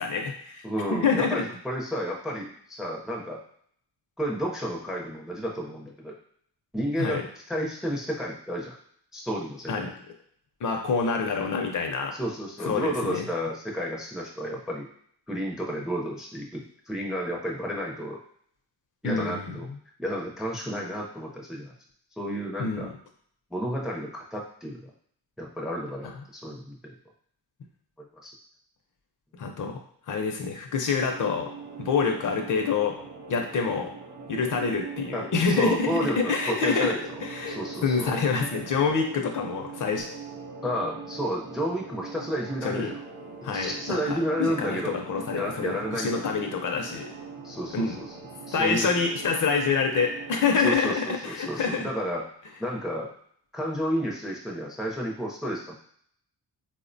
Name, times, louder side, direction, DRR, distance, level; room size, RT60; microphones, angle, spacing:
voice 1, 0.0-0.6 0.9-1.4 7.0-7.2 9.7-9.9 10.6-12.1 12.7-13.3 19.0-19.6 22.6-22.9 29.4-29.7 30.1-31.5 31.8-33.0 33.3-33.9 34.3-40.1 42.6-42.9 43.4-47.1 47.7-48.0 48.5-51.9, left 5 dB, 50° left, 3 dB, 0.5 m, -27 dB
voice 2, 0.6-3.4 4.2-6.1 6.7-8.7 9.1-9.9 12.2-14.9 15.3-18.2 19.0-19.7 20.0-21.7 22.2-22.9 23.5-24.9 25.4-27.0 28.2-28.3 35.1-37.2 37.5-38.2 40.6-43.0 43.5-45.0 45.3-46.6 47.4-48.1 48.5-48.9 50.6-52.3 52.6-53.1 53.5-55.8, equal, ahead, -1 dB, 0.4 m, -31 dB
sound 1, 30.9-50.8, right 4 dB, 55° right, 0.7 m, -42 dB
3.6 x 2.1 x 2.5 m, 0.63 s
wide cardioid pair, 125°, 40 cm